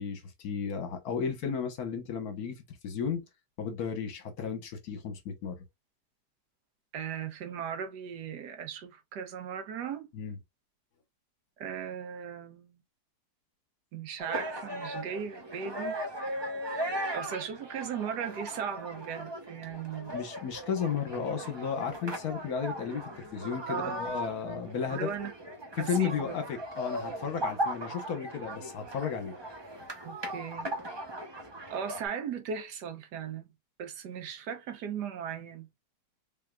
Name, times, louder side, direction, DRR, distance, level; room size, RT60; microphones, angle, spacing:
voice 1, 0.0-2.5 2.8-3.2 3.6-5.6 10.1-10.3 20.1-25.1 25.8-29.3, left 7 dB, 70° left, 1.5 m, -34 dB
voice 2, 6.9-10.1 11.6-12.8 13.9-16.0 17.1-20.1 23.7-24.2 24.9-25.3 25.8-26.3 30.0-30.7 31.7-33.5 33.8-35.7, right 7 dB, 85° right, 1.4 m, -37 dB
sound 1, 14.2-32.1, right 1 dB, 35° right, 0.4 m, -38 dB
3.6 x 3.5 x 2.3 m
omnidirectional pair, 1.7 m